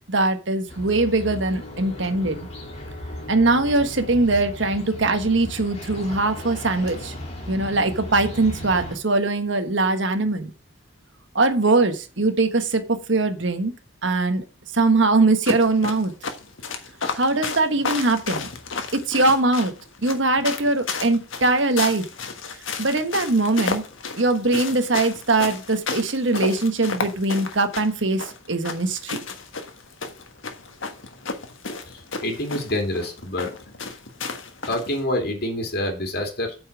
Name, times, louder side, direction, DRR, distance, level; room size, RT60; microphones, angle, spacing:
voice 1, 0.1-2.5 3.3-7.1 7.5-10.5 11.3-13.7 14.0-14.4 14.7-16.1 17.1-18.5 18.9-19.7 20.0-22.0 22.8-23.8 24.2-29.2, right 2 dB, 70° right, 7 dB, 1.3 m, -21 dB
sound 1, 0.7-9.0, left 1 dB, 35° left, 2.2 m, -36 dB
sound 2, 15.5-35.0, left 4 dB, 80° left, 1.4 m, -32 dB
voice 2, 31.9-33.5 34.7-36.6, left 1 dB, 50° left, 3 dB, 2.8 m, -27 dB
8.7 x 5.6 x 6.0 m, 0.33 s
head